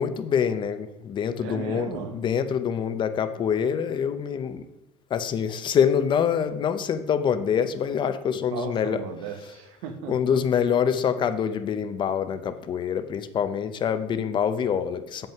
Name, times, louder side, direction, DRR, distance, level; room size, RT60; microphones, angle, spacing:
voice 1, 0.0-4.6 5.1-9.0 10.1-15.3, left 7 dB, 30° left, 10 dB, 0.6 m, -25 dB
voice 2, 1.4-2.2 8.5-10.4, right 7 dB, 85° right, 7 dB, 1.2 m, -36 dB
7.5 x 5.4 x 5.8 m, 0.95 s
cardioid pair, 140°, 15 cm